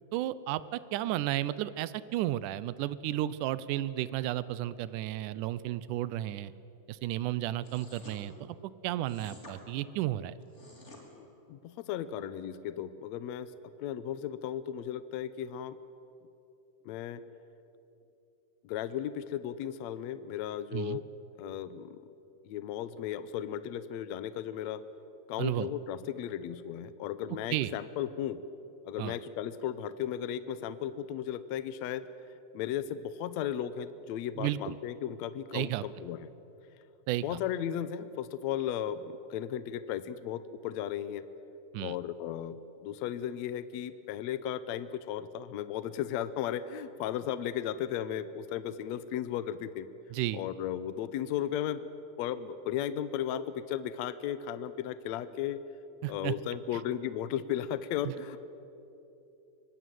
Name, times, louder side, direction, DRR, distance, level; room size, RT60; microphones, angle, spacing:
voice 1, 0.1-6.5 6.9-8.6 8.8-10.4 20.7-21.0 25.4-25.7 27.5-27.7 29.0-29.2 34.4-34.8 35.5-35.9 37.1-37.4 41.7-42.0 50.1-50.4 56.0-56.3 58.0-58.1, right 14 dB, 90° right, 17 dB, 2.2 m, -33 dB
sound 1, 7.6-8.2 9.0-9.6 10.4-11.0, left 2 dB, 20° left, 3.7 m, -51 dB
voice 2, 11.2-13.5 13.8-15.8 16.9-17.2 18.6-21.0 21.4-22.0 22.4-24.8 25.3-28.4 28.8-32.1 32.5-36.3 37.2-41.2 41.8-49.9 50.3-51.9 52.2-55.6 56.1-58.4, left 10 dB, 75° left, 14 dB, 1.9 m, -35 dB
25.0 x 19.0 x 9.2 m, 2.8 s
omnidirectional pair, 3.5 m